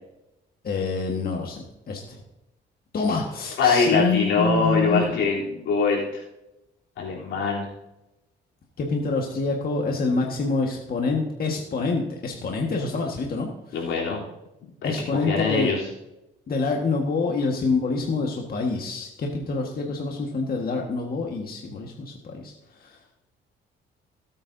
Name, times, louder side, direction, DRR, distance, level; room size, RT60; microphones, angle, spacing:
voice 1, 0.6-2.2 2.9-5.2 8.8-13.9 14.8-15.7 16.5-23.0, left 3 dB, 50° left, 0 dB, 1.7 m, -26 dB
voice 2, 3.6-6.2 7.0-7.7 13.7-14.2 14.8-14.9 15.2-15.8, left 4 dB, 85° left, -4 dB, 3.6 m, -23 dB
17.5 x 8.7 x 2.8 m, 0.91 s
cardioid pair, 90°, 20 cm